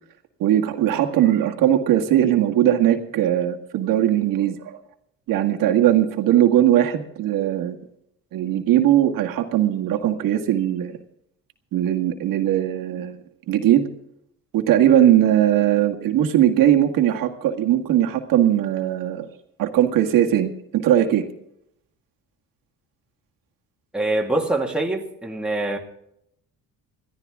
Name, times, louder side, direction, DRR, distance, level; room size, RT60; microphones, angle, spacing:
voice 1, 0.4-4.8 5.3-7.8 8.3-11.0 11.7-13.2 13.5-13.9 14.5-19.3 19.6-21.2, right 11 dB, 75° right, 3 dB, 1.8 m, -19 dB
voice 2, 23.9-25.8, right 2 dB, 5° right, 0 dB, 1.9 m, -24 dB
21.0 x 13.5 x 3.6 m, 0.77 s
cardioid pair, 140°, 34 cm